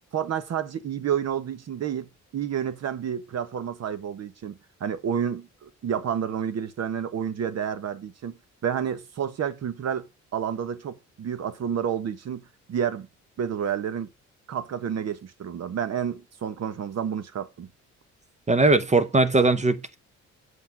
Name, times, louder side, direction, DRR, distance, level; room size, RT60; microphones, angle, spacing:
voice 1, 0.1-8.4 8.6-13.1 13.4-14.1 14.5-17.7, right 8 dB, 55° right, 1.3 m, -30 dB
voice 2, 18.5-20.0, right 3 dB, 25° right, 0.8 m, -20 dB
8.1 x 5.8 x 6.0 m
cardioid pair, 90°, 30 cm